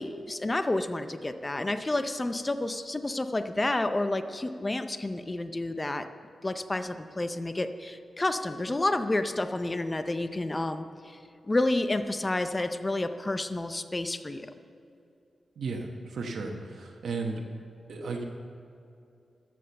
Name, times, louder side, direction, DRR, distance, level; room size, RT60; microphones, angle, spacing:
voice 1, 0.0-6.1 6.4-11.2 11.5-14.5, left 2 dB, 20° left, 9 dB, 0.5 m, -30 dB
voice 2, 15.6-17.4 17.9-18.2, right 3 dB, 75° right, 1 dB, 1.2 m, -34 dB
13.0 x 7.7 x 6.9 m, 2.7 s
wide cardioid pair, 130°, 0 cm